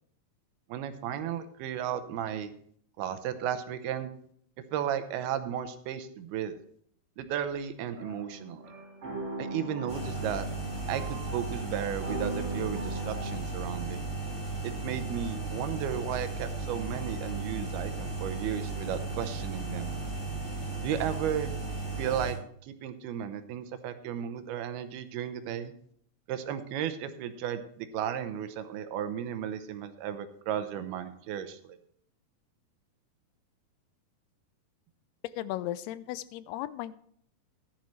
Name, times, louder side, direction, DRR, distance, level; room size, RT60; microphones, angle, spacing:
voice 1, 0.7-2.5 3.0-4.1 4.7-6.5 7.2-8.6 9.4-10.5 10.9-14.0 14.6-19.9 20.8-21.5 22.0-22.4 22.6-25.7 26.3-31.8, right 9 dB, 80° right, 10 dB, 2.8 m, -34 dB
sound 1, 7.9-13.4, right 2 dB, 45° right, 5.5 m, -39 dB
sound 2, 9.9-22.3, right 3 dB, 5° left, 3.8 m, -35 dB
voice 2, 35.4-36.9, left 14 dB, 85° left, 16 dB, 2.6 m, -36 dB
14.5 x 11.0 x 3.2 m, 0.63 s
omnidirectional pair, 4.5 m